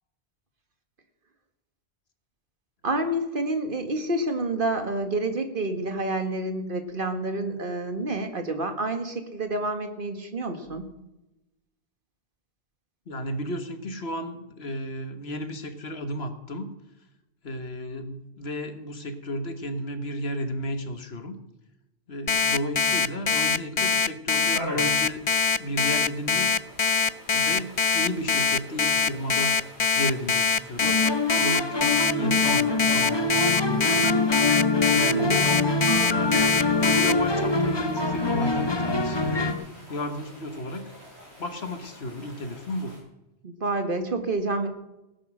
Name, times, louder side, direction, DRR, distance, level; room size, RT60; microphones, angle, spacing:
voice 1, 2.8-10.9 35.1-35.6 43.4-44.7, right 2 dB, 50° right, 7 dB, 1.9 m, -28 dB
voice 2, 13.1-16.7 17.4-21.4 22.1-25.2 25.6-26.5 27.3-29.5 30.0-31.0 31.4-34.1 34.9-35.5 36.0-36.5 36.8-39.6 39.9-40.8 41.4-42.9, equal, 65° left, 8 dB, 1.7 m, -33 dB
Alarm, 22.3-37.1, left 5 dB, 45° left, 0.4 m, -23 dB
sound 1, 24.5-43.0, equal, 70° right, 7.1 m, -45 dB
sound 2, 30.8-39.5, left 2 dB, 25° left, 1.2 m, -25 dB
17.5 x 9.9 x 6.4 m, 0.94 s
omnidirectional pair, 1.1 m